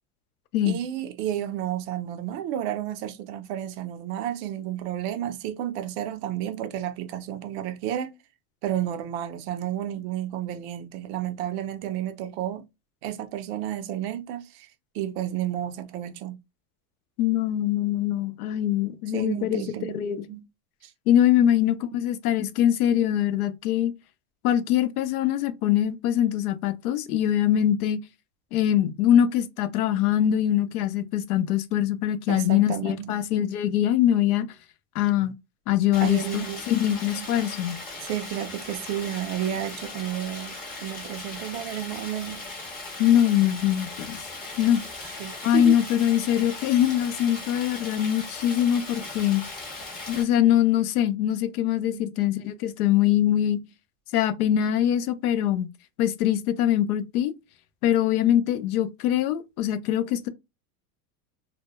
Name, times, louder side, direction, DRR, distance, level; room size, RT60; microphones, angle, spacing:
voice 1, 0.7-8.1 8.6-12.6 13.0-14.7 14.9-16.4 19.1-20.4 20.8-20.9 21.4-21.5 32.3-33.2 36.0-36.6 37.1-37.5 38.0-40.6 40.8-42.4 45.2-45.8 51.9-52.3 53.4-53.5, right 11 dB, 50° right, 0.5 m, -31 dB
voice 2, 17.2-19.6 19.9-20.2 21.1-23.9 24.4-28.0 28.5-34.5 34.9-35.3 35.7-37.8 43.0-44.2 44.6-44.8 45.4-49.4 50.1-53.6 54.1-55.7 56.0-57.3 57.8-60.3, left 11 dB, 80° left, 0.6 m, -23 dB
Stream, 35.9-50.2, left 2 dB, 20° left, 0.6 m, -38 dB
2.2 x 2.0 x 2.8 m
supercardioid pair, 150°, 44 cm